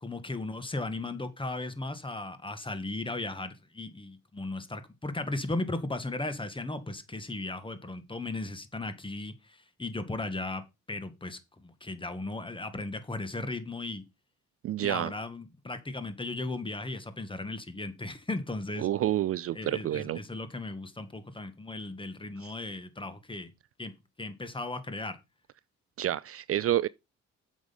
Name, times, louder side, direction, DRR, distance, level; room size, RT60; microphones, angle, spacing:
voice 1, 0.0-10.6 10.9-14.0 14.8-18.9 19.5-23.5 23.8-23.9 24.2-25.2, left 2 dB, 15° left, 1.8 m, -36 dB
voice 2, 14.6-15.1 18.8-20.2 26.0-26.9, right 12 dB, 50° right, 0.4 m, -28 dB
8.0 x 6.5 x 5.4 m
cardioid pair, 90°, 30 cm